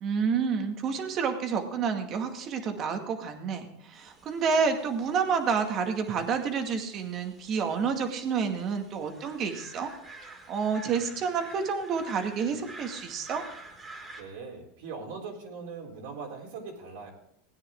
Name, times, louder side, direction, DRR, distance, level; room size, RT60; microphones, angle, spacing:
voice 1, 0.0-9.9 10.2-13.4, right 6 dB, 40° right, 5 dB, 2.1 m, -29 dB
sound 1, 3.9-14.2, right 2 dB, 20° right, 2.7 m, -49 dB
voice 2, 14.2-17.1, right 4 dB, 75° right, -1 dB, 3.7 m, -40 dB
17.0 x 9.6 x 3.8 m, 0.71 s
supercardioid pair, 110°, 0 cm